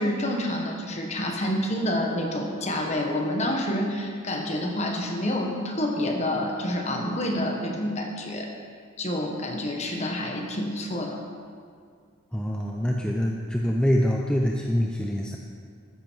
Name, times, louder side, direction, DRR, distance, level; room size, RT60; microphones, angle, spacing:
voice 1, 0.0-8.5 9.0-11.2, left 1 dB, 35° left, 2 dB, 1.4 m, -28 dB
voice 2, 12.3-15.4, equal, 5° left, -1 dB, 0.6 m, -25 dB
13.5 x 10.0 x 4.6 m, 2.1 s
head